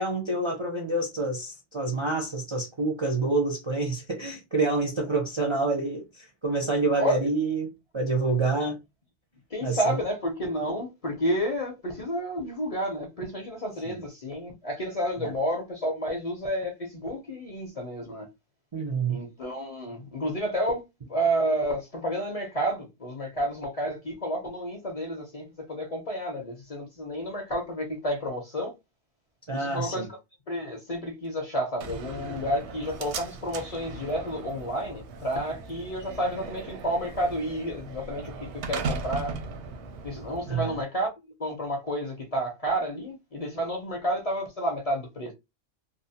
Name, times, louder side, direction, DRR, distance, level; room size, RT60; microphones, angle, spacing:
voice 1, 0.0-8.8 9.6-10.0 13.9-14.0 15.2-15.3 18.7-19.2 29.5-30.1 40.5-40.8, right 3 dB, 40° right, 0.4 m, -27 dB
voice 2, 9.5-18.3 19.1-28.7 29.5-30.1 30.5-39.4 40.0-41.1 41.4-45.3, equal, 40° left, 0.6 m, -30 dB
Slam, 31.8-40.8, right 4 dB, 85° right, 0.9 m, -38 dB
2.6 x 2.1 x 2.6 m
omnidirectional pair, 1.1 m